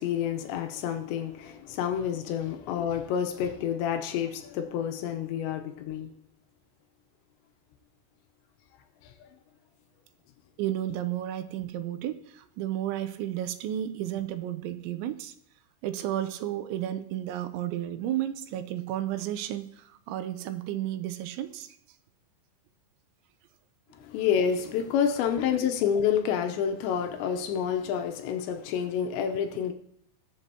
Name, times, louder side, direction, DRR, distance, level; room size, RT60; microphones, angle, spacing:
voice 1, 0.0-6.1 24.0-29.7, left 8 dB, 85° left, 2.9 m, -28 dB
voice 2, 10.6-15.3 15.8-21.8, right 12 dB, 85° right, 3.0 m, -32 dB
21.0 x 7.4 x 2.8 m
omnidirectional pair, 5.3 m